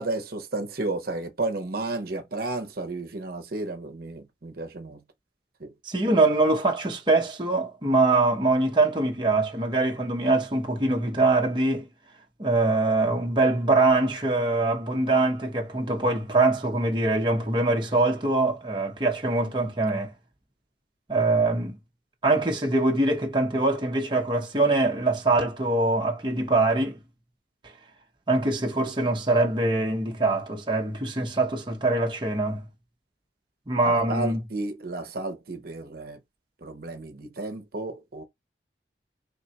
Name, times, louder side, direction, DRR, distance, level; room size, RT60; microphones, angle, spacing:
voice 1, 0.0-5.0 5.6-5.7 33.8-36.2 36.6-38.2, right 2 dB, 55° right, 0.8 m, -32 dB
voice 2, 5.8-11.9 12.4-20.1 21.1-21.8 22.2-27.0 28.3-32.7 33.7-34.4, right 2 dB, 25° right, 0.8 m, -23 dB
3.6 x 2.3 x 4.0 m
head